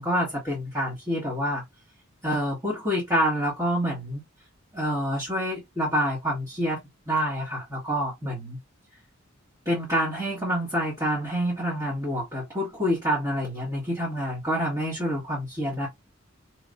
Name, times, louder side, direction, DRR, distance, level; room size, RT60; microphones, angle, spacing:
voice 1, 0.0-1.6 2.2-4.2 4.7-6.8 7.1-8.6 9.6-15.9, equal, 15° right, 1.6 m, -27 dB
3.2 x 3.1 x 2.5 m
head